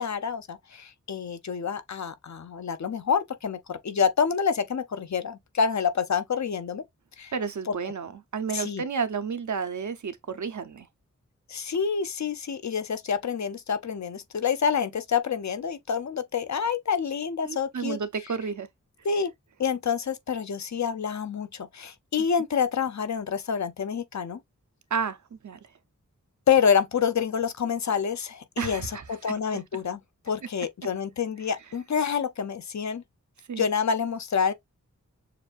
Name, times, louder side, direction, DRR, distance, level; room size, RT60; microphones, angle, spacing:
voice 1, 0.0-6.8 7.2-7.3 7.7-7.8 8.5-8.8 11.5-18.0 19.0-19.3 19.6-24.4 26.5-30.0 30.3-33.0 33.6-34.5, left 6 dB, 65° left, 0.6 m, -27 dB
voice 2, 7.3-10.9 17.4-18.7 24.9-25.2 25.4-25.6 28.6-29.6 33.5-33.6, right 6 dB, 70° right, 0.7 m, -31 dB
6.7 x 2.5 x 2.4 m
wide cardioid pair, 80°, 30 cm